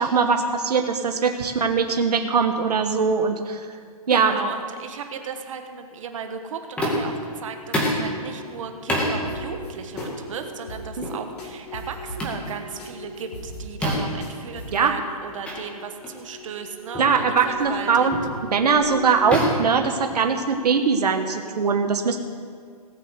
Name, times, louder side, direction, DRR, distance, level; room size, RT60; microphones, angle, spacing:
voice 1, 0.0-3.7 4.1-4.3 11.0-11.1 14.7-14.9 17.0-18.2 18.5-22.2, right 5 dB, 85° right, 5 dB, 1.1 m, -21 dB
voice 2, 4.1-18.3, right 6 dB, 55° right, 6 dB, 1.3 m, -35 dB
sound 1, 6.8-7.2 7.7-8.1 8.9-9.1 10.0-10.2 11.0-11.2 12.2-12.4 13.8-14.2 15.4-15.6 16.0-16.2 16.9-17.2 18.1-18.4 19.3-20.5, left 1 dB, 5° left, 2.0 m, -26 dB
sound 2, 7.4-19.7, left 1 dB, 50° left, 3.7 m, -42 dB
sound 3, 9.3-9.7 10.0-10.1 10.3-10.4 10.7-11.1 11.4-12.5 12.8-12.9 13.2-14.9, equal, 80° left, 3.7 m, -38 dB
18.0 x 6.1 x 8.0 m, 2.1 s
hypercardioid pair, 155°, 20 cm